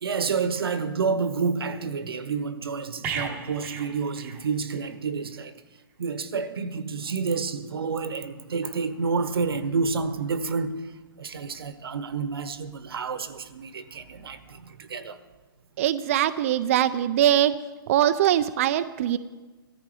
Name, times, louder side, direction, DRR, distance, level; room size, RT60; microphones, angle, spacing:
voice 1, 0.0-5.5 6.0-10.9 11.2-15.2, right 5 dB, 85° right, 1.3 m, -29 dB
sound 1, 3.0-4.9 5.2-5.4, right 6 dB, 15° right, 0.9 m, -35 dB
voice 2, 15.8-17.5 17.9-19.2, right 11 dB, 35° right, 0.5 m, -22 dB
16.5 x 14.0 x 4.9 m
hypercardioid pair, 160°, 12 cm